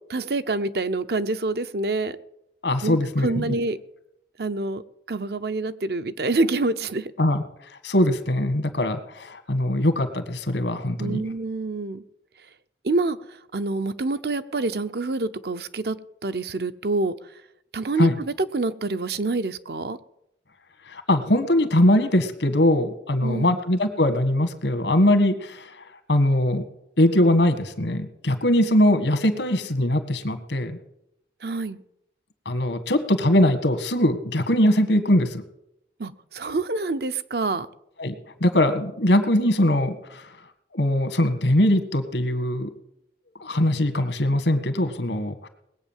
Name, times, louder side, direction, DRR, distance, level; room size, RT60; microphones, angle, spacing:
voice 1, 0.1-2.2 2.8-3.8 4.4-4.8 5.1-7.1 11.0-12.0 12.8-13.2 13.5-16.0 16.2-17.1 17.7-20.0 23.2-23.6 31.4-31.8 36.0-37.7, right 2 dB, 65° right, 0.7 m, -26 dB
voice 2, 2.6-3.6 7.2-7.4 7.8-11.2 18.0-18.2 20.9-25.8 26.1-26.6 27.0-30.8 32.5-35.4 38.0-38.1 38.4-40.3 40.7-42.7 43.4-45.5, left 1 dB, 85° left, 1.7 m, -21 dB
20.0 x 8.4 x 7.4 m
head